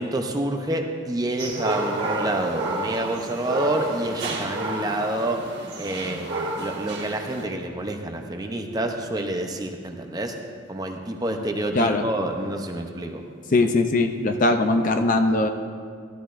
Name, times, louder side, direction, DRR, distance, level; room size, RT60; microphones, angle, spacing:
voice 1, 0.0-5.4 5.8-10.3 10.7-13.2, right 1 dB, 20° right, 4 dB, 0.6 m, -28 dB
sound 1, 1.4-7.4, right 2 dB, 55° right, 1.9 m, -30 dB
voice 2, 13.5-15.5, left 2 dB, 40° left, 6 dB, 0.5 m, -20 dB
14.5 x 12.0 x 2.5 m, 2.1 s
head